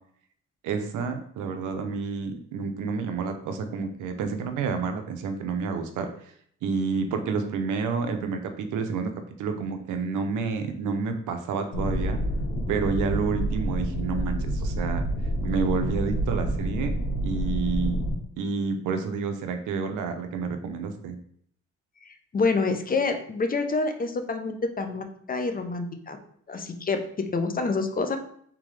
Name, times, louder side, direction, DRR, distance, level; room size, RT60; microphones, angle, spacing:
voice 1, 0.6-6.1 6.6-9.1 9.4-12.2 12.7-15.0 15.4-17.0 17.2-18.0 18.4-21.2, right 5 dB, 85° right, 7 dB, 0.7 m, -29 dB
sound 1, 11.7-18.1, equal, 90° left, 1.4 m, -28 dB
voice 2, 22.0-26.2 26.5-28.2, left 3 dB, 30° left, 7 dB, 0.6 m, -27 dB
3.7 x 3.5 x 3.2 m, 0.64 s
cardioid pair, 90°, 30 cm